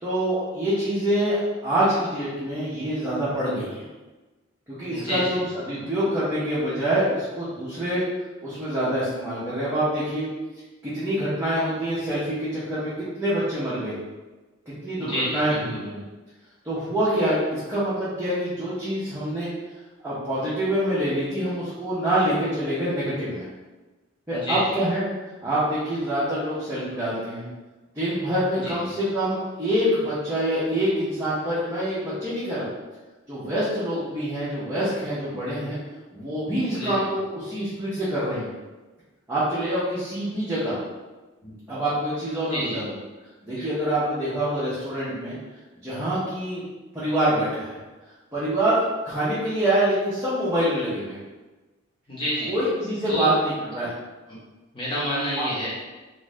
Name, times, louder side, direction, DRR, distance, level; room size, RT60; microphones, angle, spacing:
voice 1, 0.0-3.9 4.7-8.0 8.4-10.3 10.8-12.9 13.2-13.9 14.8-16.0 16.6-19.5 20.0-23.4 24.3-25.0 25.4-27.5 27.9-32.7 33.3-35.8 36.1-38.5 39.3-40.8 41.7-42.8 43.4-45.4 45.8-46.6 46.9-47.8 48.3-51.2 52.5-53.9 55.4-55.5, right 1 dB, 10° right, -12 dB, 0.6 m, -25 dB
voice 2, 4.9-5.4 15.0-15.9 24.3-24.6 28.5-28.8 36.7-37.1 41.4-41.5 42.5-42.8 43.6-43.7 52.1-52.5 53.1-53.3 53.8-53.9 54.3-54.4 54.7-55.7, equal, 25° left, -8 dB, 0.9 m, -29 dB
2.5 x 2.4 x 3.2 m, 1.2 s
head